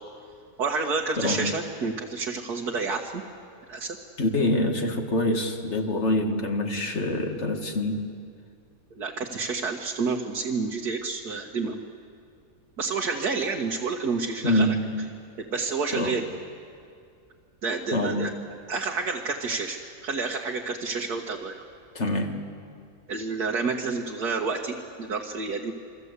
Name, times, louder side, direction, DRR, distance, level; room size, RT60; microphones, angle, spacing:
voice 1, 0.6-3.2 3.7-4.0 9.0-11.8 12.8-14.8 15.5-16.2 17.6-18.3 18.7-19.8 20.0-21.6 23.1-25.7, right 4 dB, 70° right, 0 dB, 2.0 m, -29 dB
voice 2, 1.2-1.5 4.2-8.1 14.4-15.1 15.9-16.2 17.9-18.4 21.9-22.5, left 1 dB, 45° left, 3 dB, 2.2 m, -26 dB
27.5 x 25.0 x 8.2 m, 2.4 s
omnidirectional pair, 1.7 m